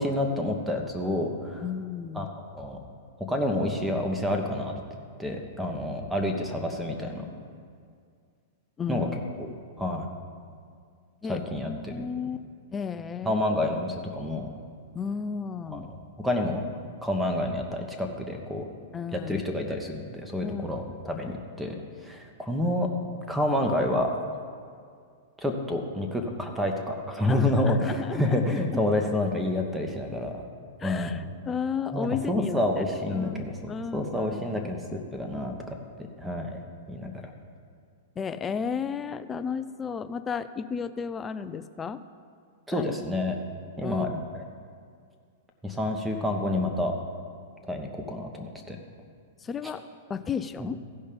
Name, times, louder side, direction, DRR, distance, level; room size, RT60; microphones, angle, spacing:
voice 1, 0.0-1.6 2.1-2.3 2.5-2.8 3.3-4.7 5.2-7.2 8.9-9.1 9.4-9.5 9.8-10.1 11.3-12.1 13.3-14.5 15.7-15.9 16.2-16.6 17.0-18.7 19.1-22.9 23.3-24.1 25.4-30.4 30.8-31.2 31.9-35.6 36.2-36.6 36.9-37.1 42.7-43.4 43.8-44.1 44.3-44.4 45.6-47.0 47.6-48.8 49.6-49.7 50.6-50.7, left 1 dB, 5° right, 4 dB, 1.2 m, -28 dB
voice 2, 1.6-2.3 8.8-9.2 11.2-12.4 12.7-13.5 14.9-15.9 18.9-19.4 20.4-20.6 21.1-21.3 27.3-28.8 30.8-32.8 33.1-34.7 38.2-42.0 42.7-43.0 43.8-44.2 49.4-49.8 50.1-50.8, left 6 dB, 20° left, 12 dB, 0.4 m, -33 dB
15.5 x 5.5 x 5.2 m, 2.2 s
hypercardioid pair, 105°, 0 cm